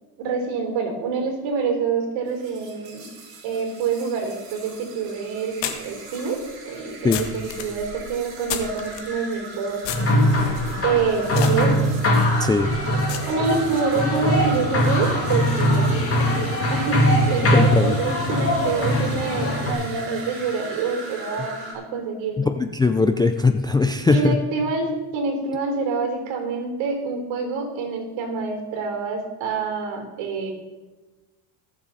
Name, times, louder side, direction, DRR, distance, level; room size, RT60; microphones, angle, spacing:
voice 1, 0.2-3.1 3.4-9.8 10.8-11.9 13.3-16.3 16.7-17.0 17.3-22.5 24.1-30.5, right 5 dB, 70° right, 4 dB, 3.8 m, -26 dB
sound 1, 2.3-21.7, right 3 dB, 50° right, 4.3 m, -39 dB
sound 2, 4.5-4.6 5.6-9.1 9.8-13.8, left 7 dB, 60° left, 1.7 m, -34 dB
sound 3, 9.9-19.7, equal, 30° left, 3.1 m, -21 dB
voice 2, 12.4-12.7 17.5-18.0 22.4-24.4, left 3 dB, 10° left, 7 dB, 0.3 m, -20 dB
19.0 x 7.4 x 4.1 m, 1.2 s
supercardioid pair, 115°, 48 cm